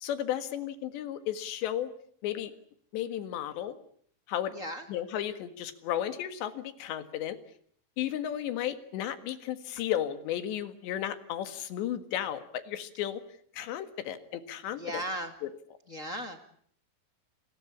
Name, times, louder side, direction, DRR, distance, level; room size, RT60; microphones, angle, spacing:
voice 1, 0.0-1.9 2.2-2.5 2.9-3.8 4.3-4.5 4.9-7.4 8.0-13.2 13.5-15.0, left 11 dB, 80° left, 10 dB, 4.0 m, -34 dB
voice 2, 4.5-4.9 14.8-15.3 15.9-16.4, equal, 50° left, 6 dB, 0.9 m, -36 dB
29.5 x 21.0 x 8.6 m, 0.63 s
omnidirectional pair, 5.0 m